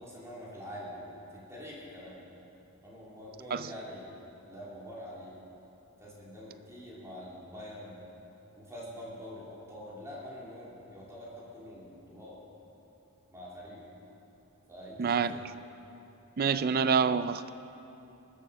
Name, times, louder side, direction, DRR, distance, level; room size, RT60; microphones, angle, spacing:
voice 1, 0.0-2.2 2.8-5.3 6.0-8.0 8.5-12.4 13.3-13.8 14.7-15.4, equal, 15° right, -6 dB, 2.9 m, -45 dB
voice 2, 15.0-15.4 16.4-17.5, right 6 dB, 45° right, 14 dB, 0.4 m, -27 dB
19.5 x 8.4 x 6.7 m, 2.9 s
head